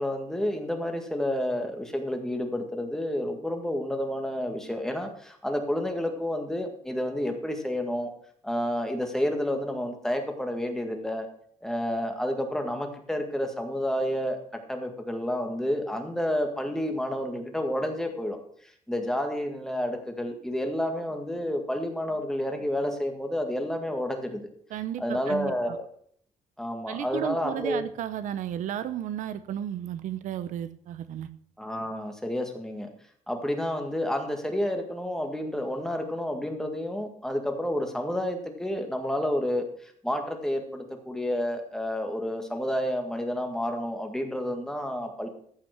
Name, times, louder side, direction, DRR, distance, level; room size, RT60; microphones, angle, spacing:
voice 1, 0.0-8.1 8.4-11.3 11.6-14.4 14.7-18.4 18.9-24.5 25.0-25.9 26.6-27.8 31.6-32.9 33.3-45.3, left 1 dB, 5° left, 4 dB, 1.8 m, -30 dB
voice 2, 24.7-25.8 26.9-31.3, right 10 dB, 75° right, 13 dB, 0.8 m, -33 dB
14.5 x 5.9 x 6.0 m, 0.62 s
cardioid pair, 135°, 13 cm